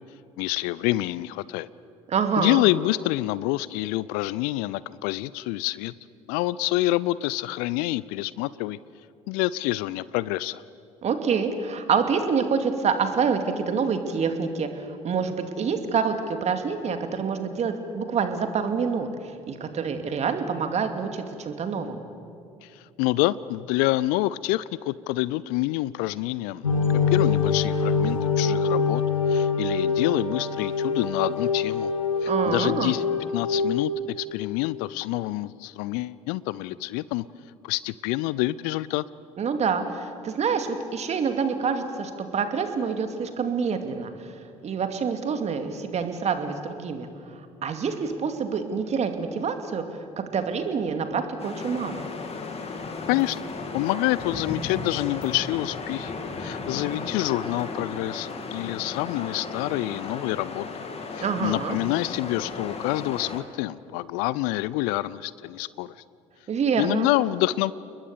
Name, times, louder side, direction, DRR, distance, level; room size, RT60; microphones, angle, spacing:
voice 1, 0.4-1.7 2.4-5.9 6.3-8.8 9.3-10.6 23.0-26.6 27.1-29.0 29.3-31.9 32.2-33.0 33.3-37.2 37.6-39.0 53.1-53.4 53.7-56.1 56.4-60.7 61.1-65.9 66.8-67.7, left 18 dB, 60° left, 20 dB, 0.5 m, -27 dB
voice 2, 2.1-2.6 11.0-22.1 32.3-33.0 39.4-44.3 44.6-47.1 47.6-49.8 50.2-52.0 61.2-61.8 66.5-67.1, right 6 dB, 40° right, 7 dB, 2.4 m, -27 dB
sound 1, 26.6-34.0, left 5 dB, 90° left, 1.4 m, -24 dB
sound 2, 51.4-63.4, left 4 dB, 35° left, 2.8 m, -35 dB
30.0 x 21.0 x 7.0 m, 2.5 s
figure-of-eight pair, 55°, 17 cm